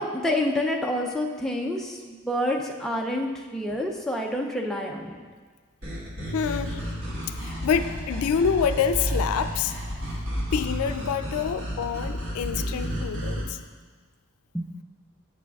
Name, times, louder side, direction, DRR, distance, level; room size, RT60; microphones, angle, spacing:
voice 1, 0.0-5.2 14.5-14.7, left 1 dB, ahead, 0 dB, 0.4 m, -28 dB
sound 1, 5.8-13.4, equal, 90° right, 1.6 m, -31 dB
voice 2, 6.3-6.8 7.4-9.7 10.5-13.6, left 7 dB, 90° left, 10 dB, 0.3 m, -27 dB
8.4 x 6.9 x 2.3 m, 1.5 s
head